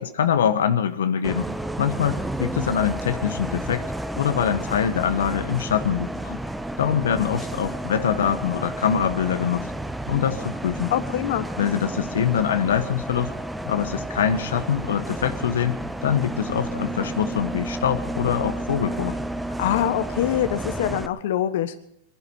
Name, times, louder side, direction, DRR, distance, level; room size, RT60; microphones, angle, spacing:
voice 1, 0.2-1.5 1.8-3.9 4.2-6.1 6.8-9.7 10.1-10.9 11.6-13.3 13.6-19.2, left 8 dB, 90° left, 9 dB, 1.1 m, -24 dB
Bus, 1.2-21.1, right 1 dB, 5° right, 0.7 m, -31 dB
voice 2, 10.9-11.5 19.6-21.7, left 11 dB, 70° left, 11 dB, 1.1 m, -24 dB
22.5 x 11.5 x 5.5 m, 0.70 s
supercardioid pair, 135°, 0 cm